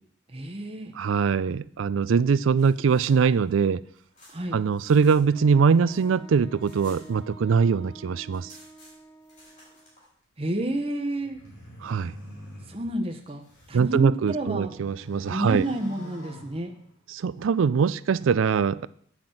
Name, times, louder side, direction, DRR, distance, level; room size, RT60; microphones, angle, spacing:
voice 1, 0.3-0.9 4.3-4.6 10.4-11.4 12.7-14.7 15.3-16.7, right 1 dB, 30° right, 0.9 m, -30 dB
voice 2, 1.0-3.8 4.5-8.5 11.8-12.1 13.7-15.6 17.1-18.9, right 6 dB, 80° right, 0.4 m, -22 dB
sound 1, 2.4-5.2 5.5-7.7 7.9-8.0 8.3-10.1, left 1 dB, 35° left, 4.6 m, -55 dB
Wind instrument woodwind instrument, 5.3-10.0, right 2 dB, 20° left, 1.2 m, -48 dB
sound 2, 11.2-13.8 14.3-17.1, equal, 70° left, 3.9 m, -46 dB
8.8 x 5.9 x 7.6 m
head